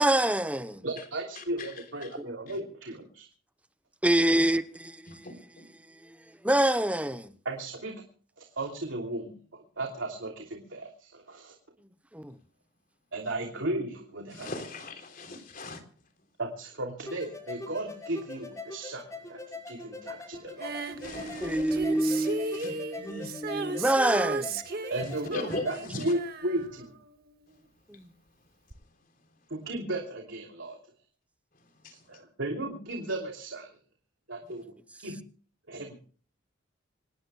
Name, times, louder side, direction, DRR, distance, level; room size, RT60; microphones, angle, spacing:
voice 1, 0.0-0.8 4.0-4.6 6.4-7.3 12.1-12.4 21.4-24.6 27.9-28.0, right 1 dB, 5° right, 0.8 m, -26 dB
voice 2, 0.8-3.3 7.4-8.0 8.4-11.5 13.1-14.5 16.4-19.4 19.7-20.8 24.9-26.9 29.5-30.8 32.1-33.7 34.3-34.7 35.0-35.2 35.7-36.1, right 1 dB, 75° right, 2.9 m, -35 dB
voice 3, 1.3-2.2 2.5-2.6 5.1-5.7 14.3-15.8 21.0-21.8 22.2-23.3 25.0-26.1 27.9-28.1 28.7-28.8 31.5-32.2, left 2 dB, 45° left, 3.6 m, -41 dB
sound 1, 17.1-25.8, left 3 dB, 15° left, 5.9 m, -42 dB
Female singing, 20.6-27.6 28.7-28.8, right 3 dB, 50° right, 1.7 m, -36 dB
27.0 x 19.0 x 2.3 m
head